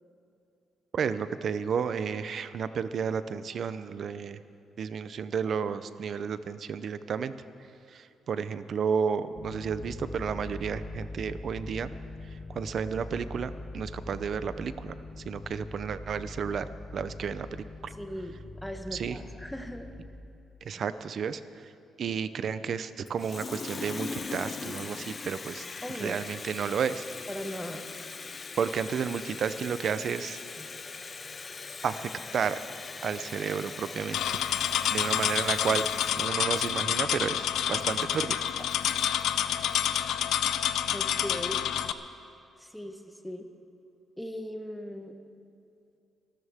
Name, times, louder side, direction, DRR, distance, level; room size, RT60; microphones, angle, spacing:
voice 1, 0.9-4.4 4.8-7.3 7.9-11.9 12.5-16.7 16.9-17.9 18.9-19.2 20.6-21.4 22.0-25.7 26.0-27.0 28.6-30.4 31.8-32.6 33.0-34.2 34.9-35.9 36.2-38.4, right 6 dB, 55° right, 13 dB, 0.7 m, -32 dB
sound 1, 9.3-20.1, left 2 dB, 55° left, 2.0 m, -42 dB
voice 2, 18.0-19.9 25.8-26.2 27.3-27.9 30.6-30.7 40.9-41.7 42.6-43.4 44.2-45.1, equal, 5° left, 5 dB, 1.3 m, -39 dB
Water tap faucet, 23.1-40.0, left 4 dB, 35° left, 0.6 m, -41 dB
sound 2, 34.1-41.9, left 10 dB, 85° left, 0.5 m, -28 dB
25.5 x 13.0 x 3.6 m, 2.7 s
cardioid pair, 110°, 0 cm